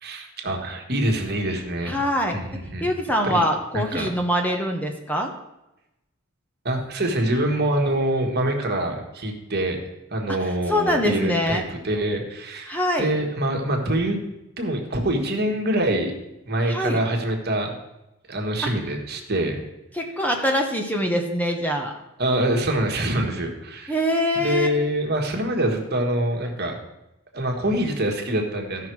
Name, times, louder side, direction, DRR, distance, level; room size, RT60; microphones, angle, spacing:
voice 1, 0.0-1.9 2.3-2.9 3.3-3.4 3.7-4.1 6.6-9.8 10.1-14.2 14.6-16.1 16.5-17.7 18.3-19.6 22.2-23.9 24.3-26.8 27.3-28.9, right 1 dB, 50° right, 2 dB, 1.6 m, -25 dB
voice 2, 1.8-2.4 2.8-5.3 10.3-11.6 12.7-13.1 16.7-17.0 18.6-18.7 19.9-21.9 23.9-24.7, equal, 10° left, 2 dB, 0.9 m, -24 dB
14.5 x 5.8 x 4.6 m, 0.93 s
head